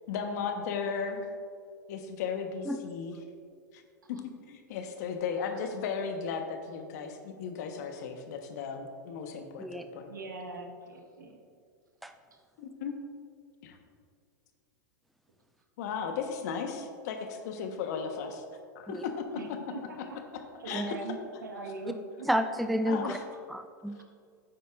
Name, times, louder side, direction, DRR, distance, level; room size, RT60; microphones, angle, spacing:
voice 1, 0.1-1.3 1.9-3.1 3.7-3.8 4.1-10.1 12.6-12.9 13.6-13.8 15.8-18.4 18.7-20.1 20.3-21.0 21.6-21.7 22.9-23.2, left 6 dB, 60° left, 5 dB, 1.2 m, -36 dB
voice 2, 10.1-11.4 19.3-20.2 20.6-22.3, right 3 dB, 85° right, 2 dB, 1.4 m, -41 dB
voice 3, 22.3-23.1 23.5-24.0, equal, ahead, 8 dB, 0.4 m, -30 dB
12.5 x 9.2 x 2.5 m, 2.2 s
hypercardioid pair, 100°, 10 cm